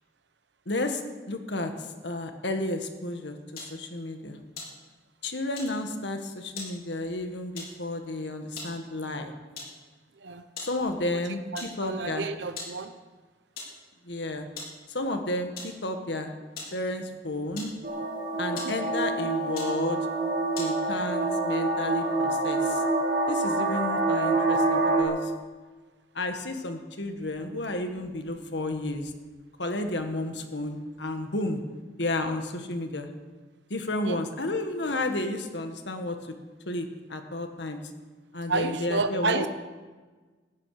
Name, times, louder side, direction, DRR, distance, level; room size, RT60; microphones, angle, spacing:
voice 1, 0.6-1.0 1.3-4.4 5.2-9.3 10.6-12.3 14.0-14.5 14.9-16.3 16.7-17.7 18.4-20.1 20.6-22.8 23.3-25.3 26.1-29.1 29.6-31.6 32.0-33.1 33.7-36.3 36.6-37.8 38.3-39.4, left 2 dB, 75° left, 6 dB, 1.7 m, -32 dB
sound 1, 3.6-3.8 4.5-5.2 5.5-5.8 6.6-6.8 7.6-7.8 8.4-8.8 9.6-9.8 10.6-10.8 11.1-11.2 11.6-11.9 12.6-12.8 13.6-13.8 14.6-14.8 15.6-15.8 16.6-16.8 17.5-18.1 18.6-18.9 19.5-19.8 20.5-20.8, left 3 dB, 55° left, 4.7 m, -40 dB
voice 2, 11.5-12.9 18.3-18.7 34.0-34.2 38.5-39.5, right 3 dB, 80° right, 9 dB, 0.8 m, -30 dB
sound 2, 17.8-25.0, right 2 dB, 50° right, 2.4 m, -26 dB
18.0 x 14.0 x 5.0 m, 1.3 s
head